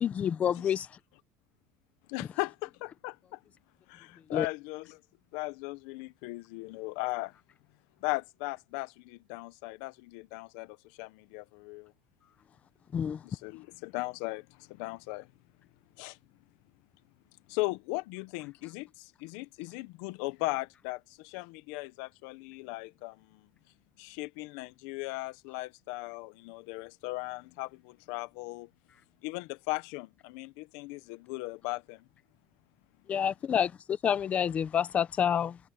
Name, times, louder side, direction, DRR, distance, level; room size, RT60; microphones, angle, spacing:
voice 1, 0.0-0.9 4.3-4.5 12.9-13.2 33.1-35.6, left 8 dB, 25° left, 0.7 m, -28 dB
voice 2, 2.1-3.4 3.9-5.0 5.3-7.3 8.0-11.9 13.2-15.3 16.0-16.2 17.5-23.4 24.0-28.7 29.2-32.0, left 22 dB, 80° left, 0.8 m, -38 dB
cardioid pair, 165°, 5 cm